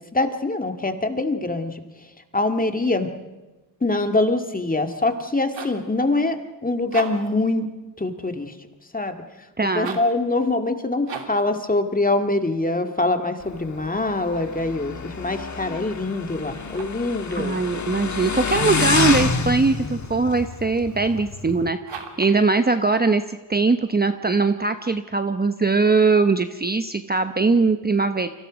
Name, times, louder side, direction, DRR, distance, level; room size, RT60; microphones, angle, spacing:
voice 1, 0.1-1.7 2.3-3.1 3.8-6.4 6.6-7.7 8.0-8.5 8.9-9.2 9.7-17.6, left 2 dB, 20° left, 6 dB, 2.0 m, -24 dB
sound 1, 5.2-5.9 6.8-7.4 9.7-10.2 11.0-11.5 16.5-17.1 18.9-19.4 21.8-22.4, right 6 dB, 85° right, 3.0 m, -37 dB
voice 2, 9.6-10.0 17.3-28.3, right 3 dB, 20° right, 8 dB, 0.9 m, -21 dB
Motorcycle, 13.4-21.7, left 5 dB, 40° left, 1.6 m, -28 dB
29.5 x 25.0 x 5.2 m, 1.1 s
wide cardioid pair, 105°, 43 cm